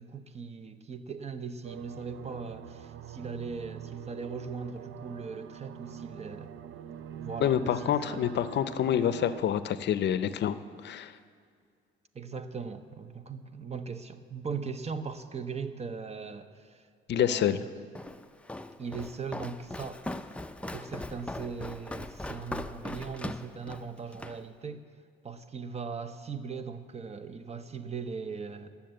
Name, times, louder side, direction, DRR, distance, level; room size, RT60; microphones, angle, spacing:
voice 1, 0.0-6.5 7.2-8.3 12.1-16.9 17.1-17.7 18.8-20.3 20.7-24.8 25.2-28.7, right 5 dB, 35° right, 11 dB, 0.7 m, -39 dB
sound 1, 1.6-9.4, right 8 dB, 75° right, 0.6 m, -44 dB
voice 2, 7.4-10.6 10.8-11.1 17.1-17.6, left 10 dB, 60° left, 13 dB, 0.5 m, -27 dB
Walk footsteps, 17.9-24.4, left 1 dB, 5° left, 0.4 m, -40 dB
12.0 x 7.1 x 7.6 m, 2.2 s
cardioid pair, 90°, 20 cm